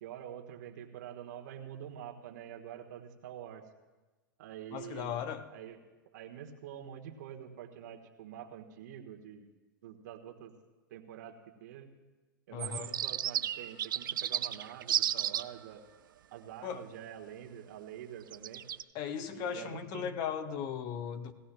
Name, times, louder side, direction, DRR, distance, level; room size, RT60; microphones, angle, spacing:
voice 1, 0.0-3.7 4.4-5.2 5.5-5.8 6.1-9.5 9.8-10.5 10.9-11.9 12.5-15.8 16.3-18.6 19.3-20.1, right 10 dB, 55° right, 1.4 m, -46 dB
voice 2, 4.7-5.5 12.5-13.0 16.6-16.9 18.9-21.3, left 8 dB, 35° left, 0.8 m, -37 dB
sound 1, 12.6-15.4 18.3-18.8, right 10 dB, 70° right, 0.4 m, -33 dB
18.0 x 15.5 x 2.3 m
hypercardioid pair, 110°, 11 cm